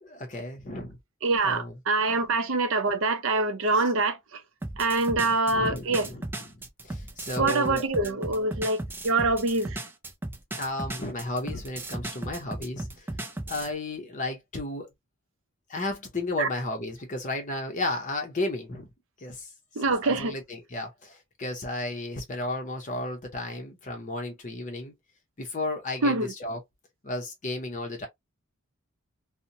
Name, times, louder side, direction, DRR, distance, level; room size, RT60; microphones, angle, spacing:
voice 1, 0.0-1.0 1.4-1.8 3.7-3.8 5.2-7.9 10.6-13.1 13.5-14.9 15.7-18.9 19.2-24.9 25.4-26.6 27.0-28.1, left 2 dB, 35° left, 0.6 m, -34 dB
voice 2, 1.2-4.2 4.8-6.1 7.4-9.8 16.4-16.5 19.8-20.3 26.0-26.3, right 3 dB, 60° right, 0.6 m, -25 dB
sound 1, 4.6-13.7, right 2 dB, 10° right, 0.3 m, -36 dB
2.8 x 2.1 x 2.5 m
head